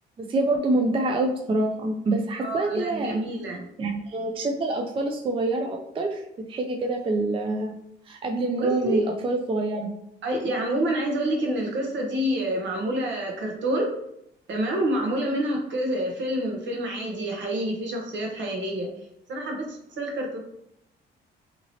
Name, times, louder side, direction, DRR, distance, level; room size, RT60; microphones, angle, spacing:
voice 1, 0.2-3.2 3.8-6.2 6.5-7.8 8.1-9.9, right 2 dB, 25° right, 2 dB, 0.4 m, -26 dB
voice 2, 2.4-3.6 8.6-9.0 10.2-14.0 14.5-18.9 19.3-20.4, right 1 dB, 65° right, 1 dB, 0.9 m, -27 dB
2.8 x 2.8 x 2.7 m, 0.74 s
cardioid pair, 90°, 20 cm